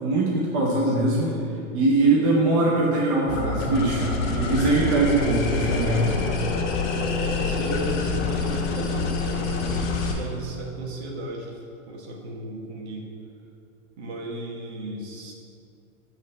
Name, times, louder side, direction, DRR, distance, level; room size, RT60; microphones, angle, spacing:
voice 1, 0.0-1.3 1.7-6.1, right 2 dB, 25° right, -4 dB, 0.5 m, -22 dB
voice 2, 0.8-1.6 6.6-11.5 11.9-13.1 14.0-15.3, right 1 dB, 50° right, 0 dB, 1.2 m, -35 dB
sound 1, 3.3-10.1, left 4 dB, 55° left, 1.2 m, -26 dB
7.5 x 3.2 x 5.3 m, 2.6 s
supercardioid pair, 165°, 42 cm